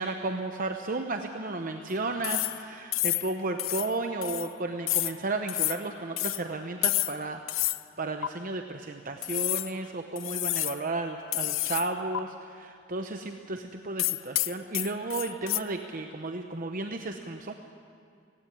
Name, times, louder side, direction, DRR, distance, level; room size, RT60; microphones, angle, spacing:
voice 1, 0.0-17.5, right 2 dB, 45° right, 5 dB, 0.9 m, -33 dB
sound 1, 2.2-2.6 2.9-3.3 3.6-3.9 4.2-4.5 4.9-5.2 5.5-5.8 6.2-6.4 6.8-7.2 7.5-7.8 8.2-8.3 9.2-9.7 10.2-10.8 11.3-11.9 12.1-12.2 14.0-15.6, left 17 dB, 75° left, 0.5 m, -29 dB
18.0 x 16.5 x 9.8 m, 2.3 s
head